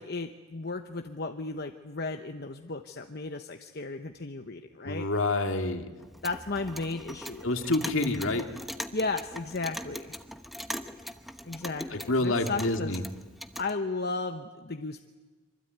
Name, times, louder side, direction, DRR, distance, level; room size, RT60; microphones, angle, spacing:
voice 1, 0.0-5.1 6.2-7.7 8.9-10.1 11.4-13.0 13.6-15.0, left 3 dB, 50° left, 6 dB, 1.0 m, -35 dB
voice 2, 4.8-5.9 7.4-8.4 11.9-13.0, left 2 dB, 70° left, 5 dB, 2.4 m, -27 dB
Clock, 6.0-13.7, equal, ahead, 0.9 m, -41 dB
26.0 x 24.0 x 9.4 m, 1.3 s
head